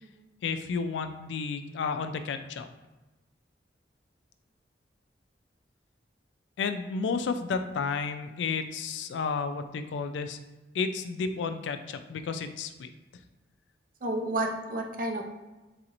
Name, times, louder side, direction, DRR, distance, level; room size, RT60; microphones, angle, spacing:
voice 1, 0.4-2.7 6.6-10.4 10.7-12.9, left 5 dB, 90° left, 8 dB, 0.3 m, -32 dB
voice 2, 14.0-15.2, right 1 dB, 50° right, 2 dB, 0.5 m, -31 dB
4.0 x 2.9 x 2.5 m, 1.1 s
head